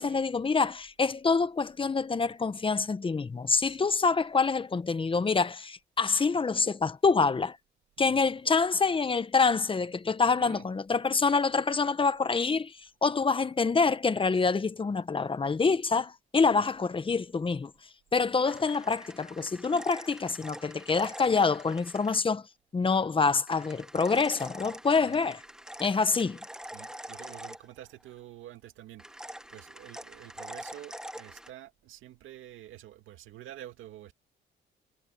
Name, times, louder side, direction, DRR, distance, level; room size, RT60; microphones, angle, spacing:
voice 1, 0.0-7.6 8.0-17.7 18.1-22.4 22.7-25.4 25.8-26.4, left 4 dB, 25° left, 1.1 m, -26 dB
sound 1, 18.4-22.2 23.5-28.1 29.0-31.5, right 1 dB, 5° right, 1.5 m, -45 dB
voice 2, 26.7-34.1, right 13 dB, 85° right, 2.3 m, -48 dB
cardioid pair, 90°, 20 cm